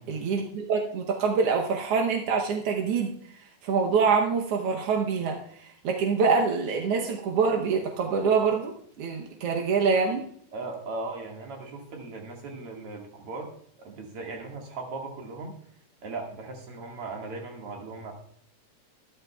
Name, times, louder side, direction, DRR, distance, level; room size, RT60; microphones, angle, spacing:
voice 1, 0.1-3.1 3.6-5.4 5.8-8.7 9.0-10.2, right 5 dB, 65° right, 1 dB, 1.5 m, -25 dB
voice 2, 10.5-13.5 13.8-15.5 16.0-18.1, right 3 dB, 50° right, 1 dB, 2.6 m, -38 dB
13.0 x 13.0 x 2.3 m, 0.64 s
omnidirectional pair, 3.7 m